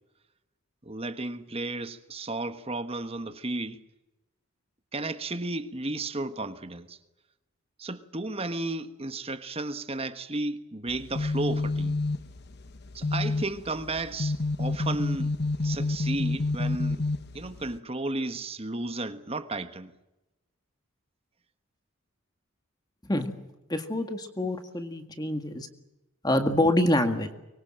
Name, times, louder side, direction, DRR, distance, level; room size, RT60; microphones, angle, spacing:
voice 1, 0.8-3.8 4.9-7.0 7.8-12.0 12.9-15.4 15.6-17.0 17.3-19.9, right 2 dB, 25° right, 1.2 m, -33 dB
sound 1, 10.9-17.8, left 3 dB, 50° left, 1.0 m, -29 dB
voice 2, 23.0-23.4 23.7-25.7 26.2-27.3, left 1 dB, 20° left, 1.9 m, -26 dB
24.5 x 23.0 x 7.6 m
head